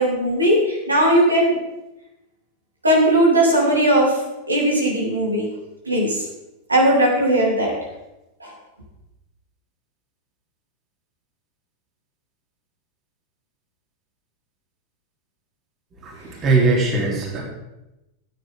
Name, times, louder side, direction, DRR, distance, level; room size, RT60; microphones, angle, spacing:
voice 1, 0.0-1.6 2.8-4.2 4.5-5.5 5.9-6.2 6.7-7.7 8.4-8.5, right 1 dB, 80° right, -3 dB, 3.5 m, -18 dB
voice 2, 16.0-17.4, right 3 dB, 30° right, -2 dB, 3.2 m, -20 dB
15.5 x 9.2 x 3.8 m, 0.94 s
figure-of-eight pair, 90°, 0 cm